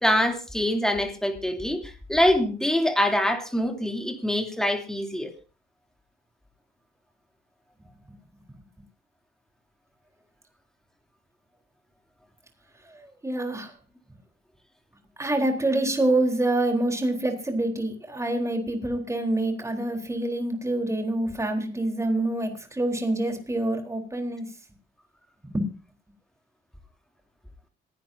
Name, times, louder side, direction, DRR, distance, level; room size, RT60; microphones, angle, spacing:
voice 1, 0.0-5.3, left 1 dB, 5° left, 4 dB, 2.9 m, -24 dB
voice 2, 12.9-13.7 15.2-24.5 25.4-25.7, right 1 dB, 15° right, 4 dB, 3.9 m, -26 dB
26.5 x 11.0 x 2.8 m, 0.32 s
cardioid pair, 90°, 20 cm